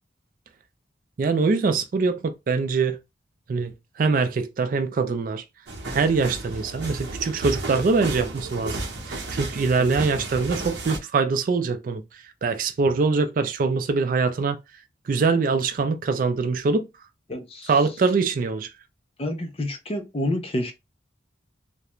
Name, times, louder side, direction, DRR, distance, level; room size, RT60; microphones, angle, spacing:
voice 1, 1.2-3.0 3.5-5.4 5.9-8.8 9.1-14.6 15.1-16.9 17.7-18.7, right 4 dB, 45° right, 0.3 m, -23 dB
sound 1, 5.7-11.0, right 2 dB, 70° right, 0.7 m, -33 dB
voice 2, 17.3-17.7 19.2-20.7, left 1 dB, 30° left, 0.4 m, -28 dB
2.4 x 2.1 x 2.9 m
head